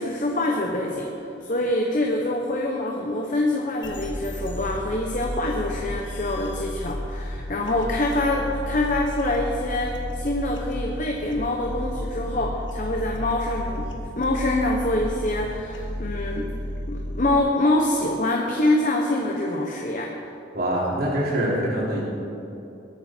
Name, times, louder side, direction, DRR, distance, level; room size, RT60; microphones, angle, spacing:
voice 1, 0.0-16.5 16.9-20.1, left 1 dB, 45° left, 0 dB, 1.0 m, -25 dB
sound 1, 3.8-17.4, equal, 75° left, 1.4 m, -33 dB
voice 2, 20.5-22.0, right 1 dB, 50° right, -5 dB, 3.1 m, -24 dB
21.0 x 8.6 x 4.5 m, 2.8 s
head